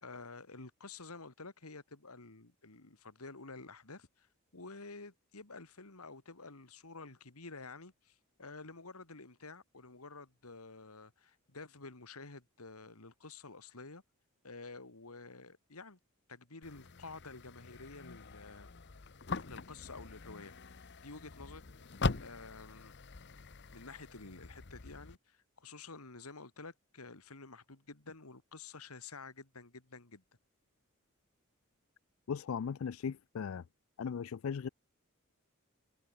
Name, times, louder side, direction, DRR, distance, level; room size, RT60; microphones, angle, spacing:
voice 1, 0.0-4.3 4.5-14.0 14.4-16.0 16.3-18.7 19.4-21.7 22.2-22.9 23.7-30.2, left 3 dB, 80° left, 2.4 m, -50 dB
sound 1, 16.6-25.2, left 3 dB, 50° left, 0.9 m, -42 dB
voice 2, 32.3-33.6 34.0-34.7, left 6 dB, 65° left, 0.4 m, -37 dB
head